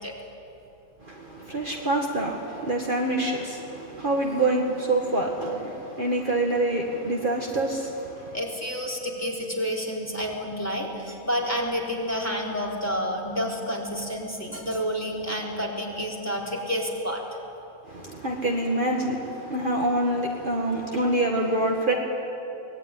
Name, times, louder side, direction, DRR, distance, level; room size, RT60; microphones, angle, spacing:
voice 1, 1.0-8.4 17.9-21.9, right 2 dB, 35° right, -1 dB, 2.1 m, -26 dB
voice 2, 8.3-17.2, equal, 10° left, -3 dB, 3.8 m, -29 dB
24.0 x 19.5 x 9.9 m, 2.8 s
omnidirectional pair, 1.5 m